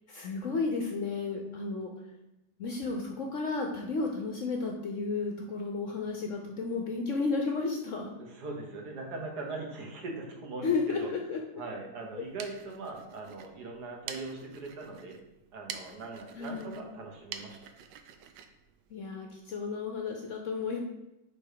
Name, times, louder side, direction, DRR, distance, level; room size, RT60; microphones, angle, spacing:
voice 1, 0.1-1.9 2.6-8.1 10.6-11.4 16.4-16.7 18.9-20.8, left 4 dB, 60° left, 2 dB, 0.9 m, -33 dB
voice 2, 8.2-10.7 11.0-11.1 11.6-15.2 15.5-17.6, right 3 dB, 65° right, 1 dB, 1.7 m, -40 dB
sound 1, 12.1-19.6, right 8 dB, 80° right, 1.3 m, -48 dB
5.2 x 4.8 x 4.9 m, 0.92 s
omnidirectional pair, 1.9 m